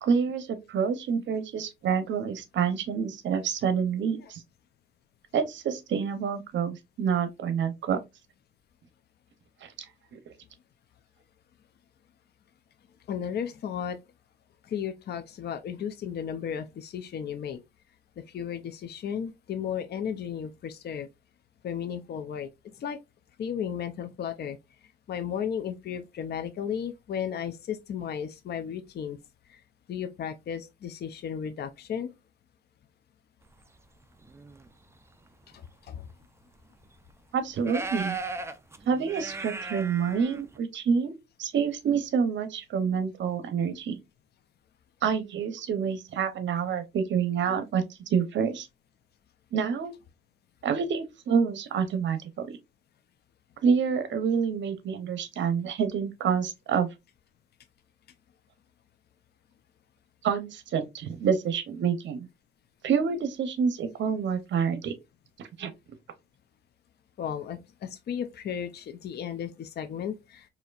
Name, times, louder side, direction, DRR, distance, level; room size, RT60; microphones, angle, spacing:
voice 1, 0.0-4.4 5.3-8.0 9.6-9.7 10.1-10.2 37.3-38.2 38.9-44.0 45.0-47.8 48.1-48.7 49.5-49.9 50.6-52.6 53.6-56.9 60.2-62.3 62.8-64.9 65.4-65.7, right 6 dB, 75° right, 0.8 m, -27 dB
voice 2, 13.1-14.0 14.7-17.6 18.2-21.1 21.6-22.5 22.8-23.0 23.4-24.6 25.1-29.2 29.5-29.6 29.9-32.1 35.5-36.0 67.2-70.5, left 8 dB, 60° left, 0.5 m, -34 dB
sound 1, 34.0-34.7 35.5-35.6 36.1-36.2 36.8-36.9 37.6-40.6, right 3 dB, 15° right, 0.4 m, -37 dB
4.2 x 2.8 x 2.4 m
cardioid pair, 115°, 19 cm